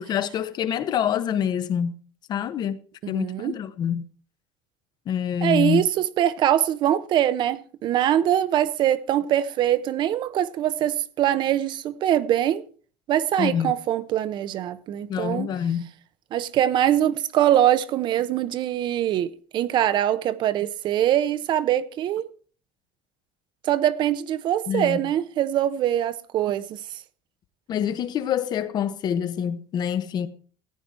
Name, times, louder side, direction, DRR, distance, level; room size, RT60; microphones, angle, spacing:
voice 1, 0.0-1.9 2.3-2.8 3.1-4.0 5.1-5.8 13.4-13.7 15.1-15.9 24.7-25.0 27.7-30.3, left 8 dB, 45° left, 1.1 m, -26 dB
voice 2, 3.0-3.5 5.4-12.6 13.1-15.5 16.3-22.3 23.6-27.0, right 11 dB, 50° right, 0.9 m, -23 dB
15.0 x 9.3 x 4.3 m
cardioid pair, 125°, 10 cm